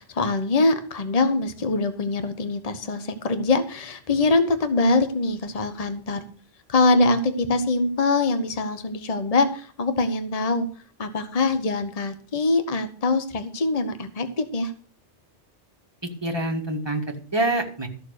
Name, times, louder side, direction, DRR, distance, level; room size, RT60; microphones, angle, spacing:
voice 1, 0.0-6.2 6.7-10.7 11.0-14.7, left 3 dB, 35° left, 9 dB, 1.2 m, -23 dB
voice 2, 16.0-17.9, right 2 dB, 20° right, 2 dB, 2.1 m, -26 dB
14.0 x 6.7 x 6.6 m, 0.42 s
omnidirectional pair, 1.2 m